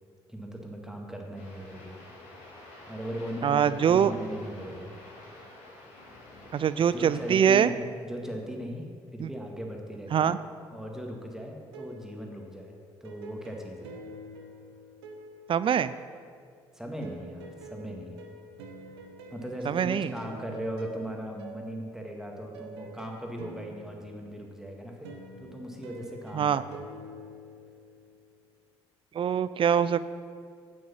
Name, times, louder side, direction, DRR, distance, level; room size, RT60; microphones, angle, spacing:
voice 1, 0.3-2.0 2.9-4.9 6.3-6.5 6.9-10.3 10.7-12.7 13.0-14.0 16.7-18.2 19.3-25.1 25.4-26.9, equal, 5° right, 1 dB, 1.8 m, -38 dB
sound 1, 1.3-7.5, left 2 dB, 65° left, 2.1 m, -48 dB
voice 2, 3.4-4.1 6.5-7.7 9.2-9.3 10.1-10.4 15.5-15.9 19.7-20.1 26.3-26.6 29.1-30.0, right 8 dB, 40° right, 15 dB, 0.4 m, -23 dB
sound 2, 11.6-16.4 17.0-28.3, right 1 dB, 75° right, 0.9 m, -47 dB
8.7 x 7.8 x 5.6 m, 2.1 s
figure-of-eight pair, 45°, 14 cm